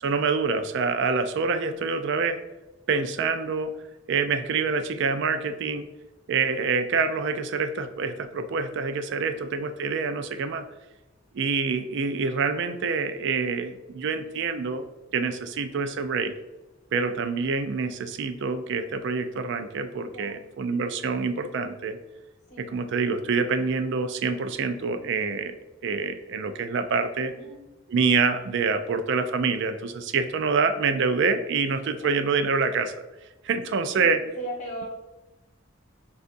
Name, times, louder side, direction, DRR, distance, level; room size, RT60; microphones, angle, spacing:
voice 1, 0.0-2.4 2.9-3.7 4.1-5.9 6.3-10.7 11.3-14.9 15.1-16.3 16.9-22.0 22.6-25.5 25.8-27.3 27.9-32.9 33.4-34.2, right 4 dB, 65° right, 9 dB, 0.4 m, -26 dB
voice 2, 20.1-20.5 22.5-22.7 27.3-27.6 31.8-32.3 33.9-34.9, right 1 dB, 40° left, -2 dB, 1.2 m, -39 dB
6.4 x 2.4 x 2.5 m, 1.0 s
head